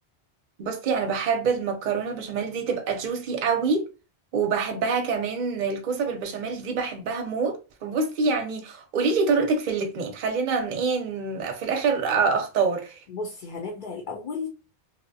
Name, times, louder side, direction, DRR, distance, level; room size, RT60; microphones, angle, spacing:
voice 1, 0.6-3.9 4.3-13.0, right 5 dB, 55° right, 0.6 m, -26 dB
voice 2, 13.1-14.5, left 4 dB, 55° left, 0.6 m, -33 dB
2.7 x 2.1 x 2.6 m
omnidirectional pair, 1.1 m